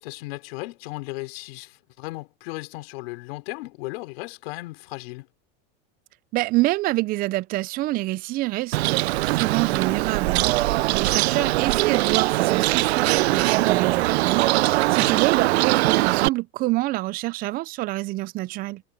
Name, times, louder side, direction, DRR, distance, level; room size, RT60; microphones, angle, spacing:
voice 1, 0.0-5.3 11.4-11.6 14.9-15.2, left 22 dB, 70° left, 4.2 m, -36 dB
voice 2, 6.3-18.8, right 19 dB, 30° right, 0.4 m, -27 dB
Bird, 8.7-16.3, right 18 dB, 85° right, 0.6 m, -21 dB
supercardioid pair, 140°, 31 cm